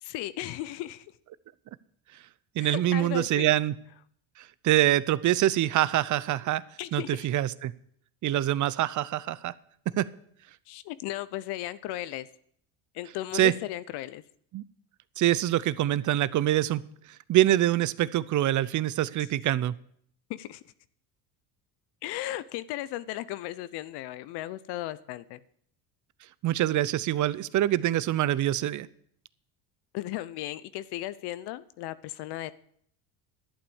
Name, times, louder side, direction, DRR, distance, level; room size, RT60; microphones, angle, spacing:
voice 1, 0.0-1.0 2.6-3.5 6.8-7.3 10.7-12.3 12.9-14.2 20.3-20.6 22.0-25.4 29.9-32.5, left 15 dB, 70° left, 15 dB, 0.7 m, -36 dB
voice 2, 2.6-3.7 4.6-6.6 6.9-7.7 8.2-9.5 10.0-10.1 13.3-13.5 14.5-14.6 15.2-16.8 17.3-19.7 26.4-28.9, right 13 dB, 45° right, 19 dB, 0.6 m, -25 dB
11.5 x 8.7 x 7.1 m, 0.65 s
supercardioid pair, 100°, 41 cm